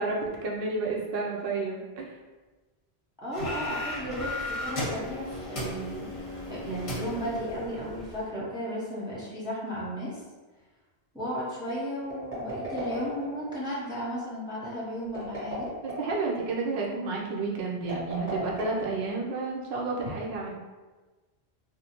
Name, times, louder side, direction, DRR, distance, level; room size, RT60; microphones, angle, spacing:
voice 1, 0.0-2.2 15.8-20.5, right 3 dB, 70° right, -2 dB, 0.8 m, -31 dB
voice 2, 3.2-6.1 6.5-10.2 11.1-15.7, equal, 5° right, -7 dB, 0.4 m, -34 dB
sound 1, 3.3-8.2, left 1 dB, 35° left, 0.7 m, -35 dB
sound 2, 12.0-13.5 15.0-16.2 17.8-19.3, right 1 dB, 50° right, 1.4 m, -36 dB
2.6 x 2.0 x 2.8 m, 1.3 s
omnidirectional pair, 1.1 m